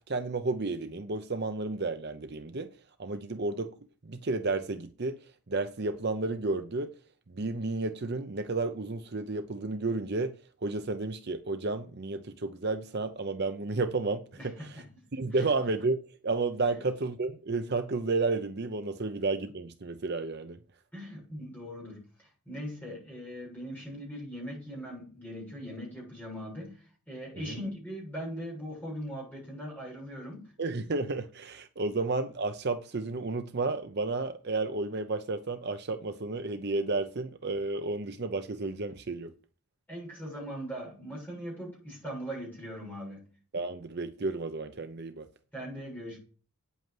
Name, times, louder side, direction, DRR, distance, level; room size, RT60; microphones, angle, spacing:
voice 1, 0.1-2.7 3.0-3.7 4.0-6.9 7.3-10.3 10.6-14.8 15.1-16.0 16.2-20.6 27.5-27.6 30.6-39.3 43.5-45.3, right 3 dB, 45° right, 0.7 m, -32 dB
voice 2, 14.3-14.9 15.3-15.5 16.7-16.8 20.9-30.5 39.9-43.3 45.5-46.2, equal, 5° left, 7.1 m, -40 dB
9.0 x 8.3 x 7.7 m
head